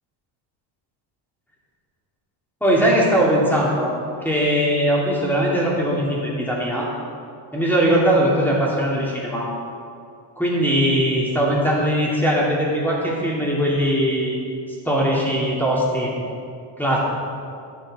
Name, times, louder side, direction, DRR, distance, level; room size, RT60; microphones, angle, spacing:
voice 1, 2.6-3.9 4.2-6.9 7.5-9.5 10.4-14.4 14.8-16.1 16.8-17.0, equal, 5° left, -5 dB, 2.8 m, -20 dB
11.5 x 7.2 x 5.1 m, 2.4 s
cardioid pair, 110°, 49 cm